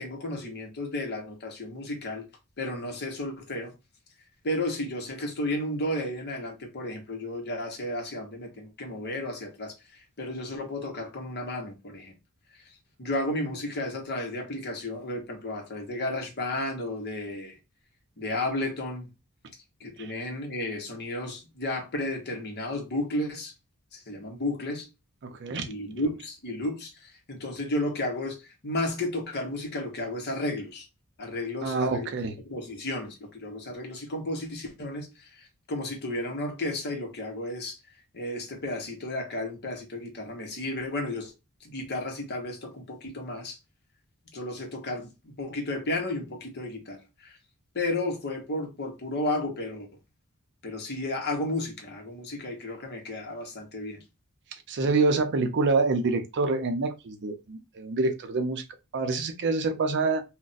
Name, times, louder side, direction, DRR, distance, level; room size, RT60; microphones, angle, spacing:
voice 1, 0.0-2.3 2.6-3.7 4.4-12.1 13.0-17.6 18.2-19.1 19.8-23.5 23.9-24.9 25.6-30.9 31.2-32.1 32.4-37.8 38.1-41.3 41.6-43.6 44.3-47.4 47.7-49.9 50.6-54.0, left 1 dB, 50° left, 0.9 m, -33 dB
voice 2, 25.2-25.7 31.6-32.4 54.7-58.6 58.9-60.2, right 3 dB, 55° right, 0.5 m, -26 dB
2.4 x 2.1 x 3.9 m
head